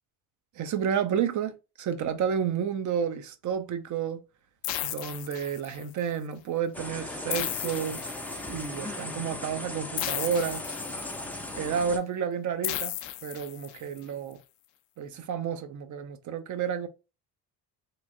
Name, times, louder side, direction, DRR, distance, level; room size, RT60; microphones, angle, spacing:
voice 1, 0.6-4.2 4.8-8.0 8.5-10.7 11.5-12.9 13.2-14.4 15.0-16.9, right 7 dB, 45° right, 0.6 m, -31 dB
sound 1, 4.6-6.0 7.3-8.7 10.0-11.3 12.6-14.0, left 13 dB, 85° left, 0.5 m, -35 dB
sound 2, 6.7-12.0, left 2 dB, 5° left, 0.4 m, -37 dB
3.0 x 2.5 x 2.5 m
cardioid pair, 95°, 41 cm